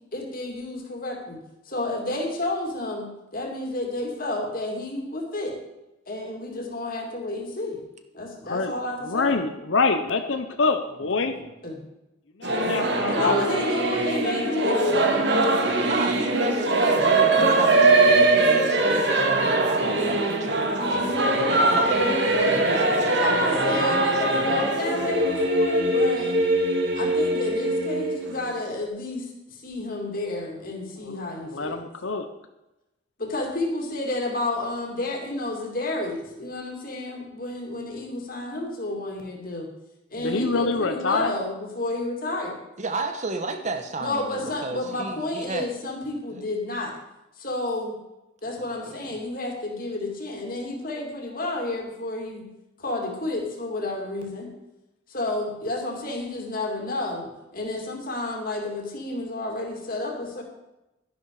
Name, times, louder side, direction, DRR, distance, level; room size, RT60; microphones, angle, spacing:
voice 1, 0.1-5.6 6.1-7.8 8.1-9.4 11.6-11.8 13.0-15.1 23.2-26.3 26.9-31.8 33.2-39.7 40.1-42.6 44.0-46.9 47.4-48.0 48.4-52.5 52.8-54.5 55.1-60.4, left 2 dB, 45° left, 1 dB, 2.8 m, -31 dB
voice 2, 9.0-11.3 12.4-13.6 31.0-31.2 31.4-32.3 40.2-41.4, left 4 dB, 70° left, 7 dB, 0.9 m, -25 dB
Singing / Musical instrument, 12.4-28.7, right 2 dB, 60° right, 1.9 m, -22 dB
voice 3, 15.4-24.7 42.8-45.7 46.3-46.4 48.6-49.0, right 3 dB, 35° right, 7 dB, 1.1 m, -33 dB
11.5 x 11.0 x 4.9 m, 0.93 s
head